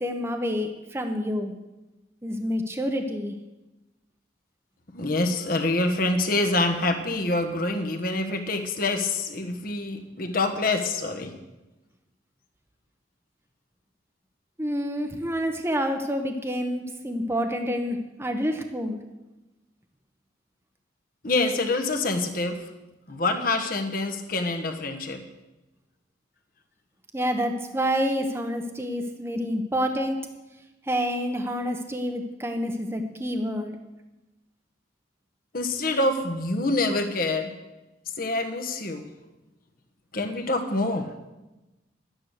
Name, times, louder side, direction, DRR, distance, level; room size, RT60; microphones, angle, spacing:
voice 1, 0.0-1.5 2.2-3.3 14.6-19.0 27.1-30.2 30.8-33.8, equal, 15° right, 5 dB, 0.8 m, -28 dB
voice 2, 4.9-11.3 21.2-22.7 23.1-25.2 35.5-37.5 38.2-39.0 40.1-41.1, left 2 dB, 50° left, 5 dB, 1.3 m, -26 dB
12.0 x 9.7 x 6.5 m, 1.1 s
head